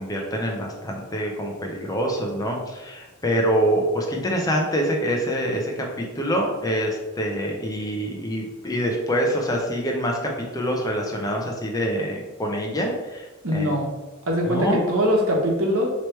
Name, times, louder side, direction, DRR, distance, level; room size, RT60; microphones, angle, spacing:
voice 1, 0.0-13.3 13.5-13.7 14.5-14.8, equal, 20° left, 0 dB, 0.5 m, -25 dB
voice 2, 13.4-13.9 14.3-15.9, equal, 80° right, -1 dB, 1.0 m, -22 dB
3.2 x 3.0 x 4.3 m, 1.1 s
head